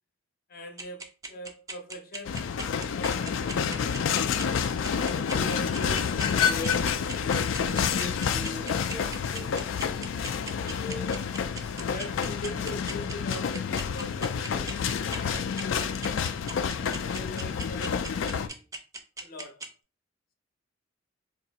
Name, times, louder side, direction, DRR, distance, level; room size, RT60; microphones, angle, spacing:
voice 1, 0.5-4.7 5.3-9.7 10.5-11.1 11.9-16.2 16.7-18.6 19.2-19.6, left 1 dB, 50° left, 0.7 m, -41 dB
sound 1, 0.8-19.7, right 3 dB, 15° right, 0.5 m, -38 dB
sound 2, 2.2-18.5, left 7 dB, 75° left, 0.3 m, -29 dB
2.7 x 2.5 x 4.0 m
head